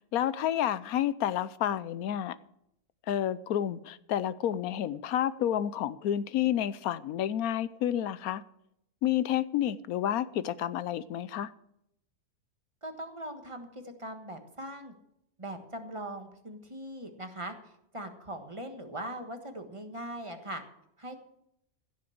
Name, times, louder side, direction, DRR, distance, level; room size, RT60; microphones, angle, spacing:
voice 1, 0.1-2.4 3.1-8.4 9.0-11.5, left 11 dB, 75° left, 1.1 m, -30 dB
voice 2, 12.8-14.9 15.4-20.6 21.0-21.2, right 1 dB, 20° right, 1.4 m, -40 dB
15.5 x 6.8 x 7.9 m
omnidirectional pair, 1.6 m